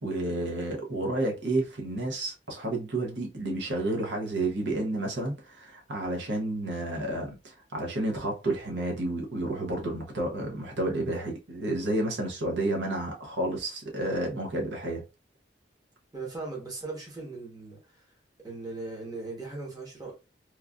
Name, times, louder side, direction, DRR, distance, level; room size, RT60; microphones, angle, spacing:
voice 1, 0.0-15.0, right 2 dB, 75° right, 0.8 m, -31 dB
voice 2, 16.1-18.1 18.4-20.1, right 3 dB, 20° right, 1.0 m, -38 dB
3.1 x 2.4 x 2.3 m
head